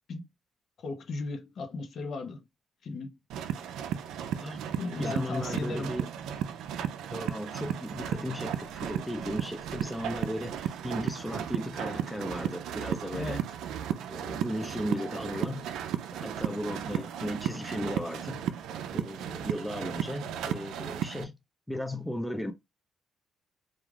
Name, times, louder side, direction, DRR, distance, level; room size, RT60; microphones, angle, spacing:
voice 1, 0.8-2.4 2.8-3.2 4.7-5.9 13.1-13.4, left 3 dB, 60° left, 0.6 m, -36 dB
sound 1, 3.3-21.2, right 9 dB, 85° right, 0.3 m, -35 dB
voice 2, 4.4-4.7 5.0-6.1 7.1-13.4 14.1-15.7 16.1-18.4 18.9-21.4 21.7-22.5, equal, 5° left, 0.4 m, -36 dB
2.4 x 2.3 x 3.2 m
cardioid pair, 90°, 0 cm